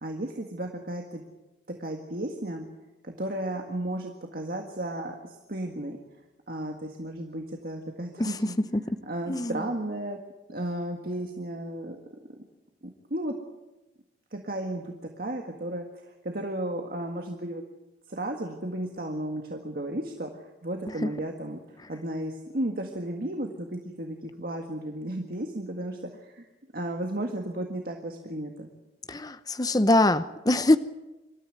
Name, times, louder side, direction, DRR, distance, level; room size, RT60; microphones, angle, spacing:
voice 1, 0.0-1.2 1.7-2.7 3.0-6.0 6.5-8.6 8.8-10.2 10.5-12.0 12.8-13.4 14.3-17.6 18.1-21.6 21.9-26.5 26.7-28.7, right 1 dB, 55° right, 3 dB, 1.8 m, -34 dB
voice 2, 29.1-30.8, left 1 dB, 20° left, 12 dB, 0.8 m, -23 dB
25.5 x 13.5 x 9.4 m, 1.1 s
head